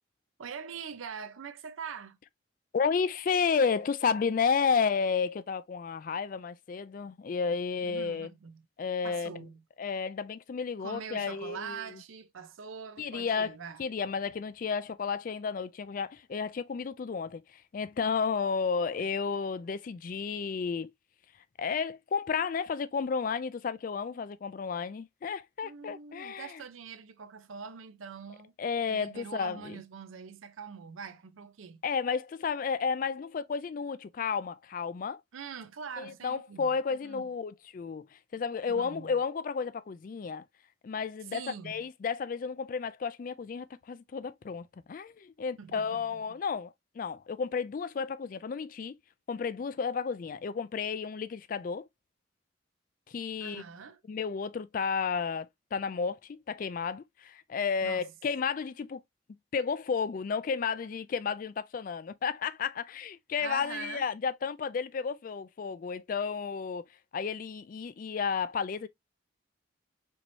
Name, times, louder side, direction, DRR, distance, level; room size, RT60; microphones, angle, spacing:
voice 1, 0.4-2.2 7.8-8.6 9.0-9.6 10.8-13.8 25.6-28.5 28.9-31.8 35.3-37.2 38.7-39.1 41.3-41.8 45.6-46.1 53.4-54.0 57.8-58.1 63.4-64.1, right 6 dB, 85° right, 0.5 m, -43 dB
voice 2, 2.7-8.3 8.8-9.5 9.8-11.8 13.0-13.5 13.8-20.9 21.6-26.6 28.6-29.8 31.8-35.2 36.0-40.4 40.8-49.0 49.3-51.9 53.1-53.6 54.1-59.0 59.5-66.9 67.1-68.9, left 5 dB, 45° left, 0.3 m, -32 dB
4.5 x 3.0 x 2.6 m
head